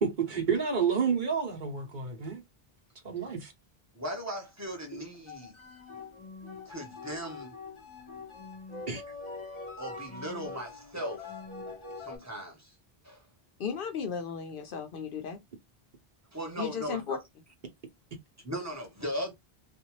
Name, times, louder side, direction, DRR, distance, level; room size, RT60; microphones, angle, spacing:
voice 1, 0.0-2.4 3.0-3.5 4.9-5.0 8.9-9.0, right 6 dB, 50° right, 1.0 m, -29 dB
voice 2, 3.9-5.5 6.7-7.5 9.8-11.3 12.0-12.7 13.0-13.2 16.3-17.2 18.4-19.3, equal, 15° right, 1.1 m, -38 dB
sound 1, 5.1-12.2, left 3 dB, 30° left, 1.0 m, -43 dB
voice 3, 13.6-15.4 16.6-17.2, left 6 dB, 65° left, 0.7 m, -35 dB
2.5 x 2.4 x 3.0 m
omnidirectional pair, 1.0 m